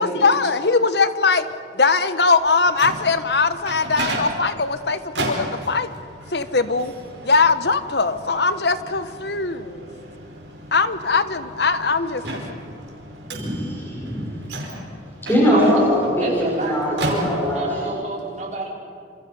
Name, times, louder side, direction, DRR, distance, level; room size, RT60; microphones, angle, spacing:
voice 1, 0.0-1.4 1.7-5.9 6.3-6.9 7.2-9.9 10.7-12.6, left 4 dB, 65° left, 12 dB, 1.1 m, -20 dB
Microwave oven, 2.4-17.8, right 1 dB, 85° right, 5.4 m, -34 dB
voice 2, 13.3-14.3 15.3-16.0 16.3-18.0, equal, 15° left, -6 dB, 6.6 m, -21 dB
voice 3, 16.1-18.7, right 2 dB, 40° right, -3 dB, 5.2 m, -28 dB
28.5 x 27.0 x 5.6 m, 2.4 s
head